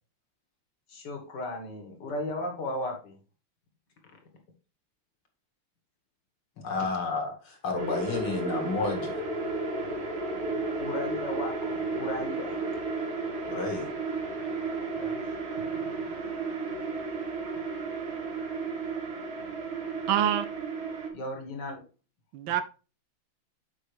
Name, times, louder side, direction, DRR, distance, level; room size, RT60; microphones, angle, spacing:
voice 1, 0.9-3.2 10.8-12.7 14.9-15.2 15.8-16.0 21.1-21.8, left 1 dB, 55° left, 2.3 m, -36 dB
voice 2, 6.6-9.2 13.5-13.9, left 3 dB, 75° left, 2.9 m, -31 dB
sound 1, 7.8-21.1, right 3 dB, 50° right, 1.9 m, -33 dB
voice 3, 20.1-20.5 22.3-22.6, right 10 dB, 75° right, 1.3 m, -25 dB
8.0 x 5.6 x 3.4 m
omnidirectional pair, 2.3 m